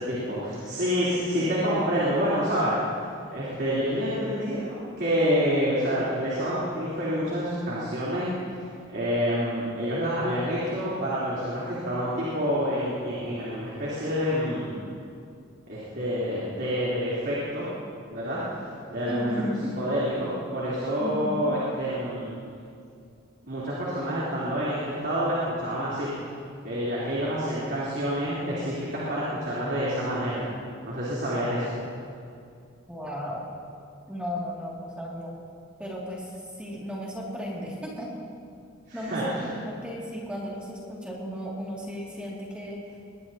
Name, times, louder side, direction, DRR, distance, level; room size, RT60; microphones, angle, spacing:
voice 1, 0.1-2.8 3.3-8.3 8.9-14.8 15.7-17.7 18.1-18.5 18.9-19.3 19.8-22.3 23.4-26.1 26.6-30.5 30.8-31.7 38.9-39.2, equal, 50° right, -9 dB, 3.7 m, -28 dB
voice 2, 19.1-19.7 21.0-21.5 32.9-33.4 34.1-35.4 35.8-36.3 36.6-38.1 38.9-42.8, equal, 5° right, -5 dB, 2.5 m, -34 dB
22.0 x 19.5 x 2.9 m, 2.4 s
head